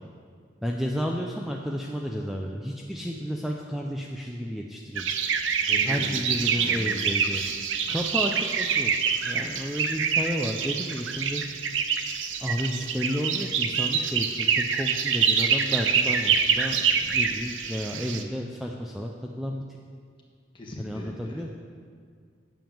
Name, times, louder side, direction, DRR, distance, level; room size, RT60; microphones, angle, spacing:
voice 1, 0.6-5.1 5.9-7.4 7.9-8.9 9.3-11.4 12.4-19.1 19.4-19.6 20.8-21.5, equal, ahead, 0 dB, 0.5 m, -32 dB
sound 1, 4.9-18.2, right 6 dB, 80° right, 0.7 m, -26 dB
voice 2, 5.6-6.1 6.5-7.4 20.5-21.5, left 1 dB, 25° left, -2 dB, 1.6 m, -40 dB
8.9 x 7.1 x 7.2 m, 2.1 s
head